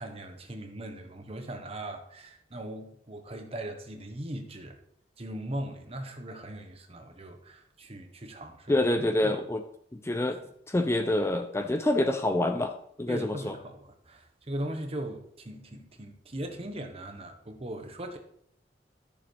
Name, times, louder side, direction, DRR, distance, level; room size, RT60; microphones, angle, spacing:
voice 1, 0.0-4.8 5.2-9.4 10.3-10.5 13.1-18.2, right 1 dB, 35° right, 1.2 m, -39 dB
voice 2, 8.7-9.6 9.9-10.4 10.7-12.7 13.0-13.5, left 1 dB, 15° left, 0.4 m, -26 dB
13.0 x 6.8 x 3.3 m
head